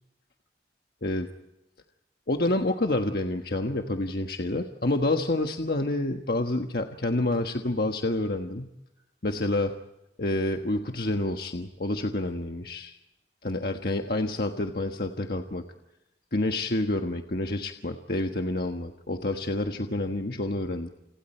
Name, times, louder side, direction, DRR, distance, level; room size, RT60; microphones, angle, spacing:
voice 1, 2.3-8.7 9.2-9.7 10.2-13.0 13.4-15.6 16.3-20.9, left 2 dB, 60° left, 4 dB, 1.4 m, -28 dB
29.5 x 29.5 x 4.4 m, 0.93 s
head